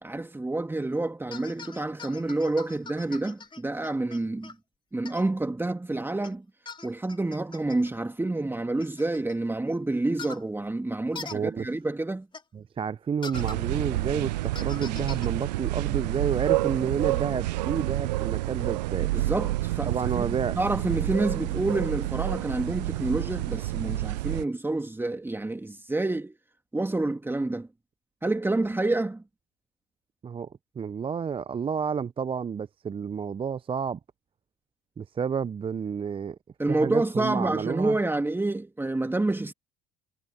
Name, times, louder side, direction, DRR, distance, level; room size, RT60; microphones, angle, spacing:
voice 1, 0.0-4.5 4.9-6.4 6.8-12.3 19.1-20.2 20.6-26.3 26.7-27.7 28.2-29.2 36.6-39.5, right 2 dB, 10° right, 2.2 m, -28 dB
sound 1, 1.3-4.5 5.0-5.2 6.2-6.3 6.7-7.9 8.8-9.3 10.2-10.4 11.1-11.4 12.3-12.4 13.2-13.6 14.5-15.3, left 4 dB, 20° left, 2.8 m, -42 dB
voice 2, 11.3-11.7 12.5-19.1 19.9-20.6 30.2-30.5 30.8-34.0 35.0-36.4 36.7-38.0, right 6 dB, 25° right, 0.7 m, -30 dB
sound 2, 13.3-24.4, right 17 dB, 75° right, 0.5 m, -29 dB
hypercardioid pair, 65°, 21 cm